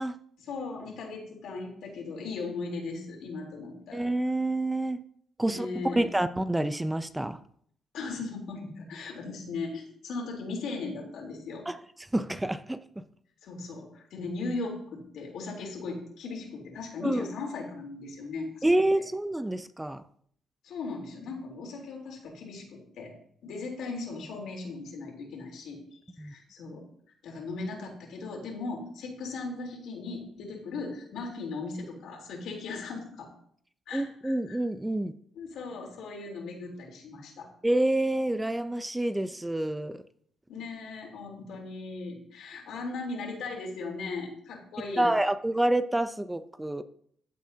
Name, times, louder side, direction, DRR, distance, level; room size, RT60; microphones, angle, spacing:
voice 1, 0.4-4.1 5.4-6.0 7.9-11.7 13.4-18.6 20.6-23.1 23.4-26.8 27.2-33.3 33.9-34.6 35.3-37.5 40.5-45.1, left 3 dB, 75° left, 0 dB, 3.6 m, -38 dB
voice 2, 3.9-5.0 5.4-5.7 6.0-7.4 11.7-11.8 12.1-13.0 17.0-17.2 18.6-20.0 26.2-26.3 33.9-35.1 37.6-40.0 45.0-46.8, right 1 dB, 10° right, 11 dB, 0.6 m, -28 dB
15.0 x 7.9 x 2.8 m, 0.63 s
cardioid pair, 90°, 0 cm